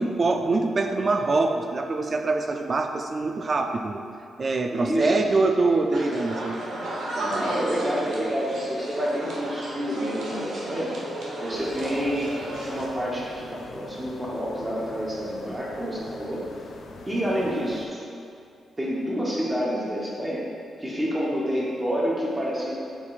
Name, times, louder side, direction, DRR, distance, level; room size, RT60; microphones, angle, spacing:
voice 1, 0.0-4.0 4.4-6.6, right 3 dB, 35° right, 5 dB, 0.4 m, -24 dB
voice 2, 4.7-5.1 6.9-10.9 11.4-12.3 12.7-16.4 17.1-18.0 18.8-20.4 20.8-22.7, equal, 15° right, -5 dB, 1.0 m, -28 dB
sound 1, 5.9-12.9, right 1 dB, 85° right, 1.1 m, -33 dB
sound 2, 11.5-17.9, left 3 dB, 65° left, 0.5 m, -44 dB
8.4 x 4.7 x 2.4 m, 2.5 s
wide cardioid pair, 145°, 0 cm